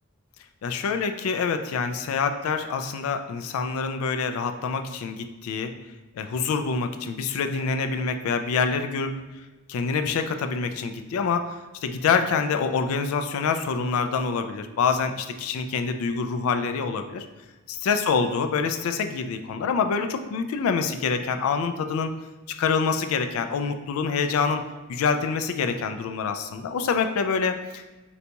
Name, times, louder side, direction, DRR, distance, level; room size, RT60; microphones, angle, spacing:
voice 1, 0.6-5.7 6.2-9.1 9.7-11.5 11.8-17.3 17.7-22.1 22.5-24.6 24.9-27.9, left 5 dB, 80° left, 7 dB, 0.3 m, -26 dB
3.9 x 2.8 x 2.2 m, 1.2 s
head